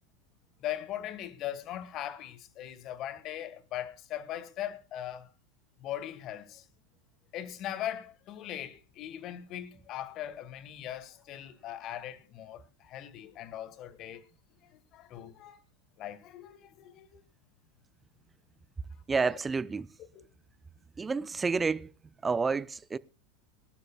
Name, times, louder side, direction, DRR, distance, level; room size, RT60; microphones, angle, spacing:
voice 1, 0.6-5.3 5.8-6.6 7.3-14.2 14.7-15.6 16.0-17.2 20.1-20.2, left 11 dB, 45° left, 1.7 m, -40 dB
voice 2, 19.1-19.9 21.0-21.9 22.2-23.0, right 4 dB, 20° right, 0.6 m, -29 dB
23.5 x 12.0 x 2.3 m
figure-of-eight pair, 85°, 0 cm